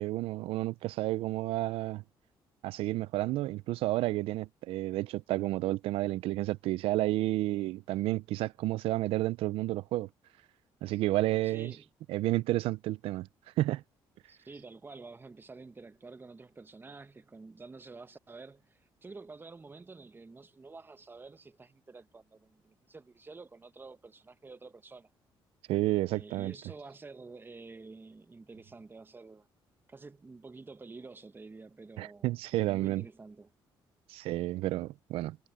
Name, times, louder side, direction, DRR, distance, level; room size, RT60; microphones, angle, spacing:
voice 1, 0.0-2.0 2.6-10.1 10.8-11.7 12.1-13.3 13.6-13.8 25.7-26.5 32.0-33.0 34.1-35.4, right 17 dB, 85° right, 0.5 m, -31 dB
voice 2, 11.4-11.9 14.3-25.1 26.1-29.5 29.9-32.3 32.6-33.5, right 3 dB, 25° right, 1.0 m, -49 dB
cardioid pair, 90°, 9 cm